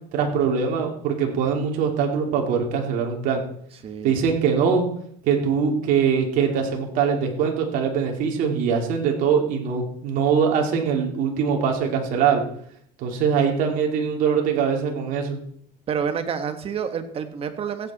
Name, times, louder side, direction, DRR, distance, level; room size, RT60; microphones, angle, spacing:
voice 1, 0.1-3.4 4.0-4.9 5.2-12.4 13.0-15.4, right 6 dB, 60° right, 2 dB, 2.9 m, -22 dB
voice 2, 3.8-4.2 15.9-17.9, right 7 dB, 35° right, 8 dB, 1.6 m, -28 dB
15.5 x 8.5 x 4.3 m, 0.65 s
supercardioid pair, 115°, 16 cm